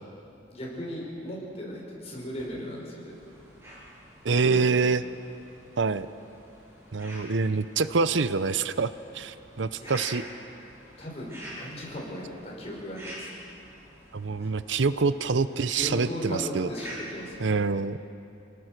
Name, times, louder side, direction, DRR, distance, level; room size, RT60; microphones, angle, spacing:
voice 1, 0.5-3.2 4.3-4.8 9.7-10.2 11.0-13.3 15.7-17.4, equal, 35° left, -3 dB, 6.0 m, -37 dB
sound 1, 3.1-17.6, equal, 15° right, 7.6 m, -47 dB
voice 2, 4.2-5.0 5.8-6.1 6.9-10.2 14.1-16.7 17.4-18.0, right 4 dB, 80° right, 13 dB, 0.7 m, -26 dB
28.0 x 19.0 x 6.6 m, 2.7 s
head